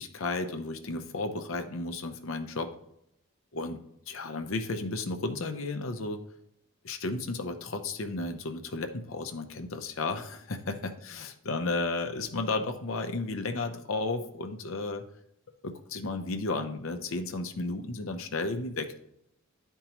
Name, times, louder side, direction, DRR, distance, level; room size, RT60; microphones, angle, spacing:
voice 1, 0.0-2.7 3.5-3.8 4.1-6.2 6.8-15.0 15.6-18.9, left 3 dB, 65° left, 7 dB, 0.7 m, -33 dB
10.5 x 4.5 x 3.0 m, 0.77 s
head